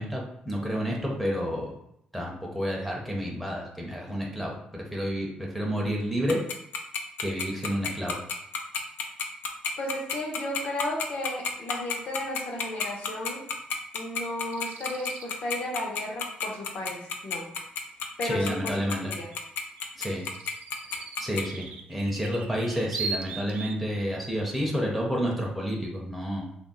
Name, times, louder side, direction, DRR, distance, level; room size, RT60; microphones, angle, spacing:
voice 1, 0.0-1.7 2.1-6.4 7.2-8.2 18.2-19.1 20.0-20.3 21.2-26.5, equal, 5° left, -2 dB, 0.6 m, -30 dB
Tick-tock, 6.3-21.4, left 6 dB, 80° left, 0.4 m, -30 dB
voice 2, 9.8-13.5 13.9-17.5 18.2-19.3, left 1 dB, 60° left, 0 dB, 0.9 m, -34 dB
sound 1, 14.5-15.3 19.3-19.4 19.8-23.8, right 5 dB, 75° right, 0.4 m, -39 dB
3.5 x 2.0 x 3.9 m, 0.76 s
cardioid pair, 160°, 3 cm